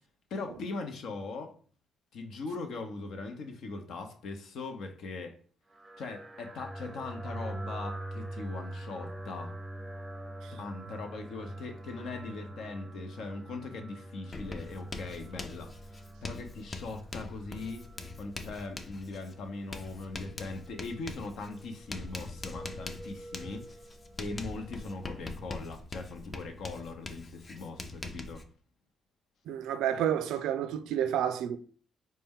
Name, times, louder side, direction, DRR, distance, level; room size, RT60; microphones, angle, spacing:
voice 1, 0.3-1.5 2.1-5.4 6.0-9.5 10.5-15.7 16.2-17.9 18.2-23.7 24.2-28.4, left 3 dB, 75° left, 0.7 m, -40 dB
sound 1, 5.7-25.4, right 1 dB, 20° right, 0.5 m, -45 dB
Writing, 14.3-28.4, left 3 dB, 30° left, 0.5 m, -43 dB
voice 2, 29.5-31.6, right 10 dB, 85° right, 0.3 m, -30 dB
4.1 x 2.2 x 3.6 m
cardioid pair, 90°, 0 cm